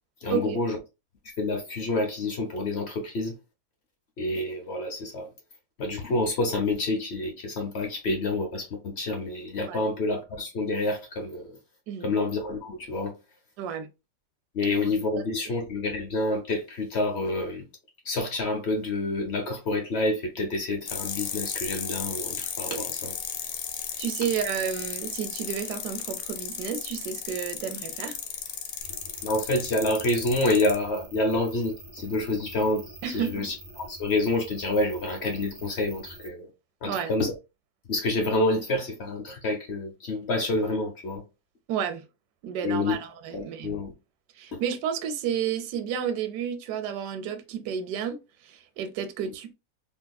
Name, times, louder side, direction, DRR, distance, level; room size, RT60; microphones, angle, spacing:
voice 1, 0.2-0.8 1.4-3.3 4.2-5.3 5.8-11.6 12.0-13.1 14.5-17.6 18.0-23.1 29.2-33.5 33.9-36.5 36.8-37.3 37.9-41.2 42.6-43.0 43.3-43.9 44.5-44.6, left 2 dB, 55° left, 0.7 m, -28 dB
voice 2, 13.6-13.9 22.7-22.8 24.0-28.2 33.0-33.5 36.8-37.1 41.7-42.0 42.4-43.8 44.4-49.5, right 8 dB, 70° right, 1.1 m, -31 dB
sound 1, 20.9-30.8, left 8 dB, 80° left, 1.3 m, -35 dB
sound 2, 28.8-36.3, right 1 dB, 50° right, 0.8 m, -46 dB
3.5 x 2.8 x 2.2 m
omnidirectional pair, 2.0 m